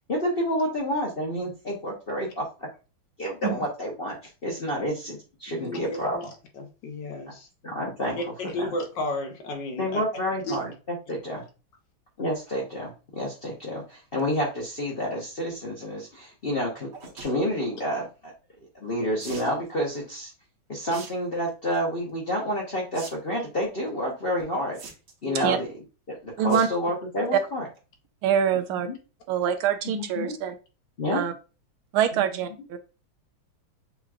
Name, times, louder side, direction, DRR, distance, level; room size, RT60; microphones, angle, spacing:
voice 1, 0.1-2.5 3.2-6.2 7.6-8.2 8.6-8.7 9.8-10.7 11.1-11.4 12.2-18.3 18.7-20.3 20.7-24.8 25.2-25.7 26.1-27.7 28.5-28.9 29.8-30.3 31.0-31.2 32.1-32.3, equal, 45° left, 0.7 m, -29 dB
voice 2, 5.5-6.2 6.6-7.5 8.4-10.0 10.4-10.6 11.3-11.4 25.2-25.5, left 1 dB, 65° left, 1.3 m, -33 dB
sound 1, 16.9-17.3 19.2-19.5 20.9-21.1 21.5-21.8 22.9-23.1 23.4-23.5 24.7-25.2 26.5-26.8 27.2-27.4 27.8-27.9 28.0-28.1, right 4 dB, 50° right, 1.4 m, -42 dB
voice 3, 28.2-28.9 29.3-30.5 31.1-31.3 31.9-32.8, right 8 dB, 85° right, 1.5 m, -24 dB
6.9 x 3.0 x 2.4 m
omnidirectional pair, 2.2 m